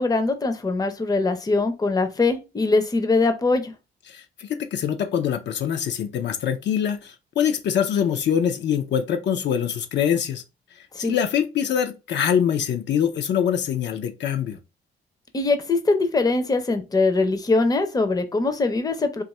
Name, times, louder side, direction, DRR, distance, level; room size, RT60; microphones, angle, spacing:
voice 1, 0.0-3.7 10.9-11.1 15.3-19.2, left 3 dB, 20° left, 0.6 m, -22 dB
voice 2, 4.1-10.4 11.0-14.6, left 8 dB, 65° left, 0.5 m, -24 dB
2.5 x 2.4 x 4.1 m
cardioid pair, 90°, 20 cm